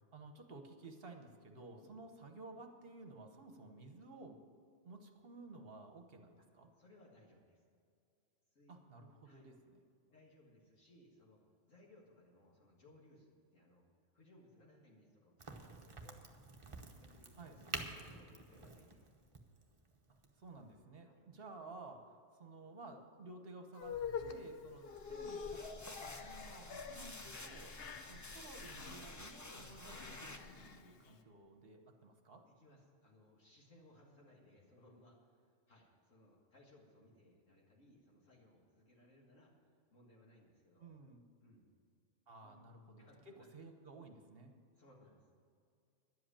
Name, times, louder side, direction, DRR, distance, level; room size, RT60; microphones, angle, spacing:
voice 1, 0.1-4.4 4.8-6.7 8.7-9.8 17.4-17.6 20.3-27.7 28.1-32.4 40.8-41.3 42.3-44.5, right 3 dB, 50° right, 5 dB, 1.2 m, -54 dB
voice 2, 6.8-7.6 8.5-9.0 9.2-9.4 10.0-13.8 14.1-16.3 17.0-19.1 21.0-21.2 27.8-28.0 32.5-39.5 39.9-40.9 41.4-41.6 42.4-42.7 43.0-43.5 44.7-45.3, left 1 dB, 75° left, -3 dB, 2.2 m, -65 dB
Crack, 15.4-20.8, right 3 dB, 25° right, 0.9 m, -49 dB
sound 1, 23.7-31.1, left 6 dB, 55° left, 0.9 m, -47 dB
sound 2, 24.9-30.8, left 2 dB, 20° left, 0.5 m, -52 dB
11.0 x 7.8 x 8.8 m, 2.2 s
omnidirectional pair, 1.3 m